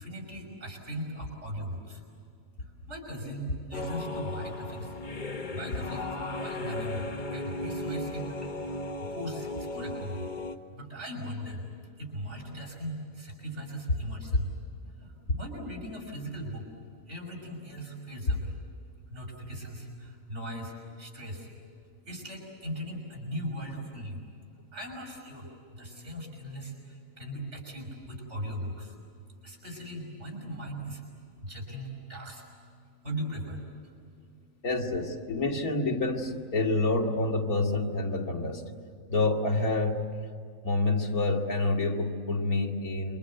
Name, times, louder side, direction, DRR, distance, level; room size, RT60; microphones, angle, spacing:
voice 1, 0.0-2.0 2.9-4.9 5.5-6.1 6.4-7.1 7.3-8.6 9.0-10.3 10.7-11.6 12.0-14.5 14.8-16.6 17.1-18.5 19.1-21.5 22.1-24.2 24.7-29.0 29.4-31.0 31.4-32.4 33.0-33.6, equal, 50° right, 0 dB, 6.2 m, -39 dB
sound 1, 3.7-10.5, left 2 dB, 35° left, 1.3 m, -36 dB
voice 2, 34.6-38.6 39.1-40.2 40.6-43.2, left 2 dB, 90° left, 1 dB, 2.8 m, -28 dB
28.0 x 24.5 x 8.0 m, 2.4 s
omnidirectional pair, 1.5 m